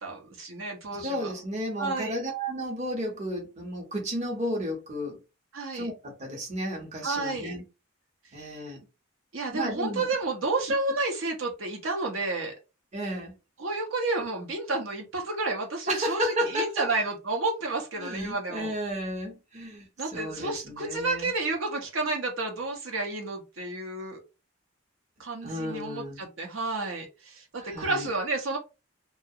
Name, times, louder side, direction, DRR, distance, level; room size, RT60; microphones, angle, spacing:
voice 1, 0.0-1.3 1.8-2.2 5.5-5.9 7.0-7.5 9.3-12.5 13.6-18.7 20.0-24.2 25.2-28.6, right 3 dB, 65° right, 0.6 m, -31 dB
voice 2, 1.0-5.2 5.7-7.6 8.3-8.8 9.5-10.1 12.9-13.3 15.9-16.9 18.0-21.3 25.4-26.2 27.6-28.1, equal, 35° right, 0.7 m, -33 dB
2.3 x 2.0 x 2.6 m
head